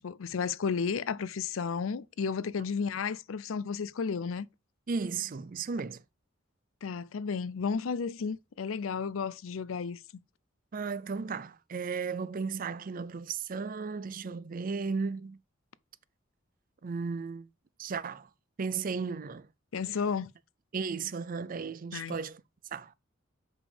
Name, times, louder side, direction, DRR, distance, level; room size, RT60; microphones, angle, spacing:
voice 1, 0.0-4.5 6.8-10.2 19.7-20.3 21.9-22.2, left 5 dB, 90° left, 0.5 m, -33 dB
voice 2, 4.9-6.0 10.7-15.4 16.8-17.5 17.8-18.3 18.6-19.5 20.7-22.4 22.7-22.9, right 5 dB, 45° right, 0.4 m, -35 dB
6.9 x 5.3 x 5.0 m
head